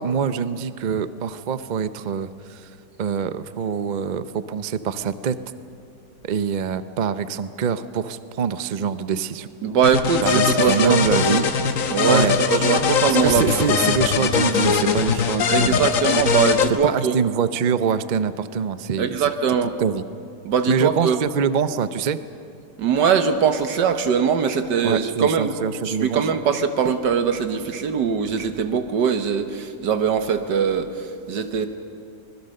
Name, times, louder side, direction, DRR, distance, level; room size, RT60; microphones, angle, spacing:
voice 1, 0.0-2.7 3.0-5.4 6.2-9.5 10.2-11.5 12.1-12.4 13.0-15.9 16.8-19.3 19.8-20.0 20.7-22.2 24.8-26.4, right 6 dB, 55° right, 12 dB, 0.5 m, -24 dB
voice 2, 9.6-11.0 11.9-13.8 15.5-17.2 19.0-19.7 20.5-21.2 22.8-25.5 25.9-31.7, right 6 dB, 90° right, 8 dB, 1.8 m, -21 dB
sound 1, 9.8-16.7, left 6 dB, 55° left, 1.3 m, -21 dB
24.5 x 21.0 x 6.6 m, 2.4 s
omnidirectional pair, 1.8 m